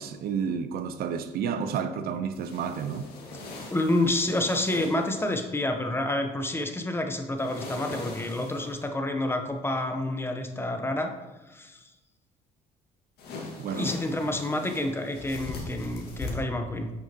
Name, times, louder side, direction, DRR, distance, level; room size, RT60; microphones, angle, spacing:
voice 1, 0.0-3.1 13.6-13.9, right 6 dB, 65° right, 0.6 m, -31 dB
sound 1, 2.3-5.4 7.4-8.9 13.2-16.3, left 3 dB, 70° left, 1.8 m, -41 dB
voice 2, 3.7-11.1 11.5-11.8 13.8-16.9, left 1 dB, 15° left, 0.7 m, -28 dB
8.8 x 6.3 x 2.9 m
cardioid pair, 110°, 17 cm